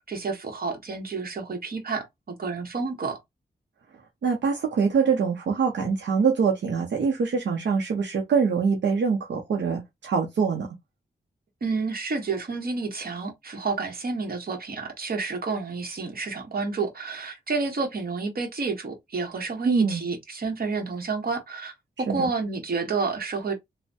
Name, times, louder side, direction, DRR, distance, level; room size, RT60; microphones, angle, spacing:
voice 1, 0.1-3.2 11.6-21.7 22.0-23.5, right 4 dB, 55° right, 1.0 m, -30 dB
voice 2, 4.2-10.7 19.6-20.0 22.1-22.3, right 5 dB, 80° right, 0.7 m, -24 dB
3.1 x 2.1 x 2.7 m
cardioid pair, 70°, 18 cm